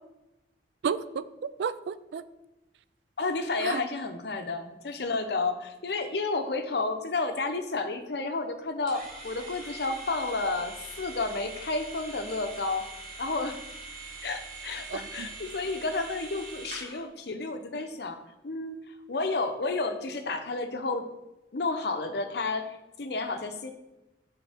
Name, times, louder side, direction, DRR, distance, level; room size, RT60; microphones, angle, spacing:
voice 1, 0.8-2.2 3.6-3.8 14.9-15.3, right 6 dB, 70° right, 0.3 m, -32 dB
voice 2, 3.2-12.9 13.2-13.6 14.2-18.2 18.4-21.1 21.5-23.7, left 3 dB, 60° left, 0.6 m, -31 dB
sound 1, 8.9-17.0, right 3 dB, 45° right, 1.8 m, -43 dB
8.8 x 3.8 x 3.5 m
head